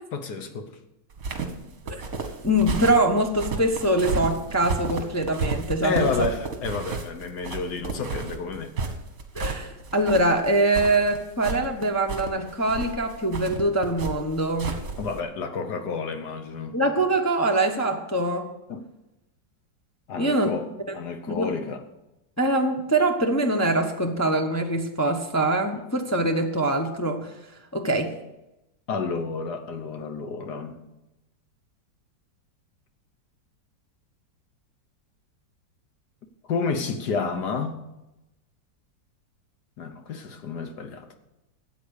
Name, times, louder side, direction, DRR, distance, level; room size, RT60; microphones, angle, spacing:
voice 1, 0.1-0.8 5.8-8.7 15.0-16.8 18.7-18.8 20.1-21.8 28.9-30.8 36.5-37.8 39.8-41.2, left 4 dB, 65° left, 1.5 m, -30 dB
sound 1, 1.1-15.2, right 4 dB, 50° right, 1.8 m, -32 dB
voice 2, 2.4-6.1 9.3-14.8 16.7-18.5 20.2-20.5 21.3-21.5 22.4-27.3 27.7-28.2, right 1 dB, 15° left, 0.5 m, -23 dB
13.5 x 8.3 x 6.5 m
omnidirectional pair, 2.0 m